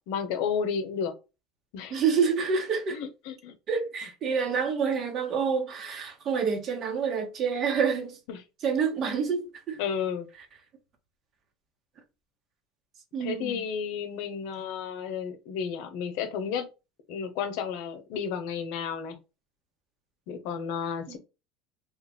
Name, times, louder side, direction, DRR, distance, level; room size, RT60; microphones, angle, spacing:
voice 1, 0.1-1.1 1.7-2.0 2.9-3.5 8.3-8.4 9.8-10.3 13.2-16.7 17.1-19.1 20.3-21.2, left 7 dB, 75° left, 0.8 m, -32 dB
voice 2, 1.9-3.0 3.7-8.2 8.6-9.8 13.1-13.6 21.1-21.2, right 6 dB, 45° right, 1.1 m, -27 dB
3.1 x 2.4 x 3.5 m
supercardioid pair, 105°, 0 cm